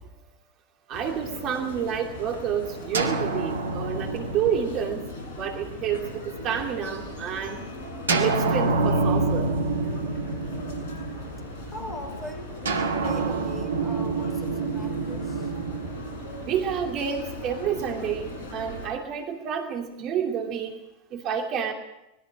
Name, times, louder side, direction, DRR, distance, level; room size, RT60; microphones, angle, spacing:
sound 1, 0.9-18.9, left 2 dB, 55° left, 6.8 m, -39 dB
voice 1, 0.9-7.6 8.1-9.5 16.4-20.7 21.1-21.7, right 8 dB, 40° right, 3 dB, 2.8 m, -29 dB
sound 2, 2.9-6.7 8.1-11.6 12.6-16.8, right 3 dB, 75° right, 2.0 m, -28 dB
voice 2, 11.7-15.5, left 1 dB, 15° left, 6 dB, 5.2 m, -41 dB
25.5 x 20.5 x 4.9 m, 0.89 s
figure-of-eight pair, 85°, 0 cm